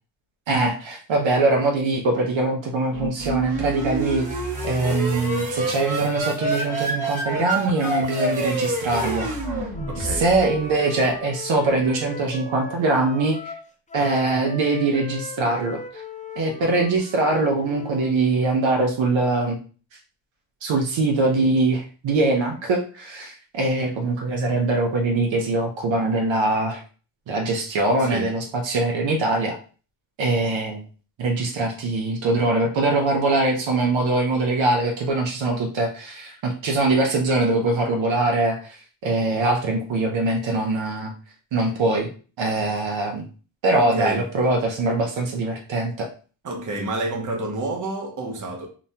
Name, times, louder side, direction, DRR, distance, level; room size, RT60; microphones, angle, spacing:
voice 1, 0.5-4.3 4.6-9.3 10.0-13.5 13.9-16.0 16.4-19.6 20.6-26.8 27.3-29.6 30.2-30.8 31.2-38.8 39.0-41.1 41.5-42.1 42.4-43.2 43.6-46.1, right 2 dB, 70° right, 0.7 m, -22 dB
sound 1, 2.9-10.5, right 2 dB, 15° right, 1.2 m, -27 dB
Wind instrument woodwind instrument, 9.7-18.1, left 3 dB, 20° left, 0.3 m, -38 dB
voice 2, 9.9-10.3 28.0-28.3 43.7-44.3 46.4-48.7, right 2 dB, 40° right, 0.8 m, -29 dB
2.9 x 2.1 x 2.7 m
cardioid pair, 80°, 47 cm